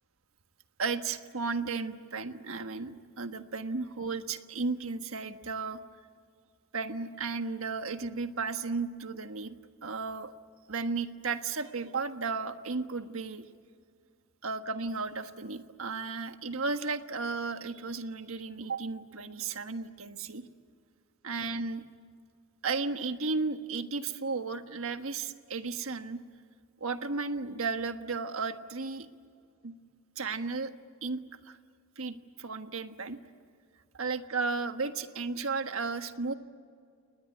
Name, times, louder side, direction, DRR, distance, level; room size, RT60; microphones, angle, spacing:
voice 1, 0.8-5.8 6.7-9.6 9.8-10.3 10.7-13.5 14.4-20.4 21.2-21.8 22.6-26.2 26.8-29.1 29.6-29.7 30.2-30.7 31.0-31.6 32.0-33.2 33.9-36.3, right 4 dB, 70° right, 8 dB, 1.4 m, -34 dB
30.0 x 20.0 x 9.7 m, 2.1 s
head